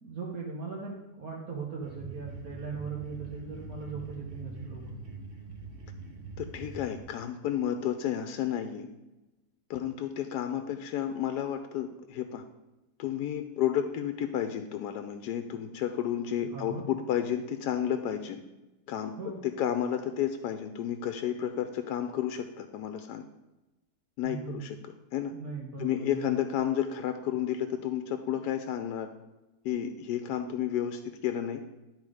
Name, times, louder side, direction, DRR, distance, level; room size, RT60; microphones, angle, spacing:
voice 1, 0.0-4.8 16.5-16.8 19.2-19.4 24.2-24.5 25.3-26.3, right 4 dB, 60° right, -4 dB, 1.5 m, -39 dB
sound 1, 1.8-7.0, right 3 dB, 45° right, 0.9 m, -44 dB
voice 2, 6.4-8.9 9.7-12.4 13.0-18.4 18.9-19.1 19.4-23.2 24.2-24.8 25.1-25.3 25.8-29.1 29.6-31.6, left 10 dB, 80° left, 7 dB, 1.1 m, -31 dB
10.5 x 3.9 x 4.8 m, 1.0 s
omnidirectional pair, 1.7 m